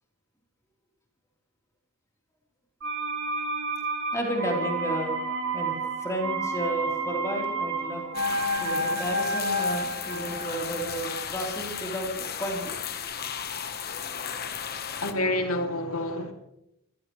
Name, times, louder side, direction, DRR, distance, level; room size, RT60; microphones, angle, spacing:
sound 1, 2.8-12.5 12.8-12.9, right 1 dB, 55° right, 2.4 m, -31 dB
voice 1, 4.1-5.1 5.5-8.0 8.6-12.8, right 1 dB, 15° left, 3.7 m, -32 dB
sound 2, 8.1-15.1, left 8 dB, 45° left, 1.2 m, -35 dB
voice 2, 15.0-16.3, left 1 dB, 75° left, 2.8 m, -28 dB
25.5 x 16.5 x 3.2 m
head